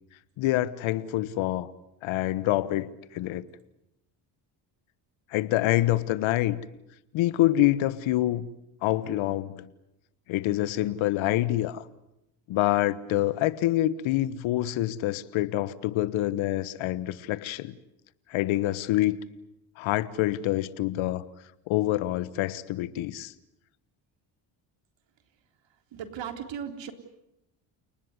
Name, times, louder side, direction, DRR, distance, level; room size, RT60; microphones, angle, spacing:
voice 1, 0.4-1.7 2.0-3.5 5.3-6.6 7.1-8.4 8.8-9.7 10.3-11.8 12.5-17.7 18.3-19.2 19.8-21.2 21.7-23.3, left 15 dB, 75° left, 17 dB, 1.3 m, -26 dB
voice 2, 25.9-26.9, right 8 dB, 65° right, 7 dB, 3.9 m, -36 dB
29.5 x 19.5 x 9.7 m, 0.86 s
supercardioid pair, 70°, 48 cm